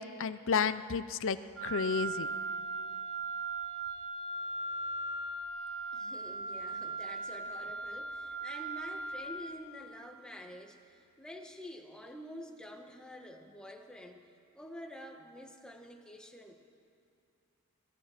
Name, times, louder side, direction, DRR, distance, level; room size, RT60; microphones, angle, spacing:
voice 1, 0.0-1.4 1.6-2.3, left 6 dB, 60° left, 12 dB, 0.6 m, -31 dB
Wind instrument woodwind instrument, 1.6-9.3, right 3 dB, 70° right, 4.4 m, -38 dB
voice 2, 5.9-14.2 14.5-16.6, equal, 5° left, 2 dB, 1.7 m, -48 dB
26.0 x 18.5 x 5.9 m, 2.5 s
head